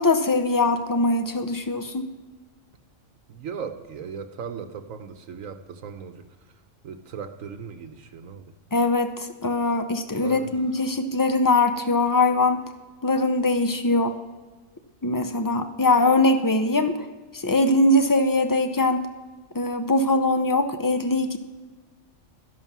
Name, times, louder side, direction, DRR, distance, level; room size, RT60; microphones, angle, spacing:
voice 1, 0.0-2.1 8.7-12.6 13.0-14.2 15.0-16.9 17.3-19.1 19.5-21.4, left 2 dB, 25° left, 8 dB, 0.5 m, -22 dB
voice 2, 3.3-6.2 6.8-8.5 10.2-10.5, right 6 dB, 75° right, 9 dB, 1.2 m, -37 dB
12.5 x 11.0 x 6.0 m, 1.3 s
omnidirectional pair, 1.4 m